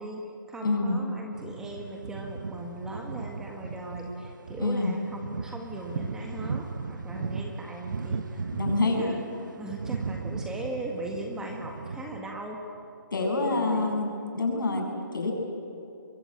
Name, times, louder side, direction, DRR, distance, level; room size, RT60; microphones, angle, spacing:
voice 1, 0.0-9.2 9.6-12.6 13.2-13.9, right 1 dB, 5° right, 1 dB, 1.6 m, -39 dB
voice 2, 0.6-1.0 4.6-4.9 8.5-9.1 13.1-14.8 15.1-15.3, left 2 dB, 70° left, 1 dB, 7.5 m, -26 dB
sound 1, 1.3-12.2, right 5 dB, 65° right, 1.4 m, -36 dB
23.5 x 23.0 x 8.9 m, 2.6 s
hypercardioid pair, 160°, 11 cm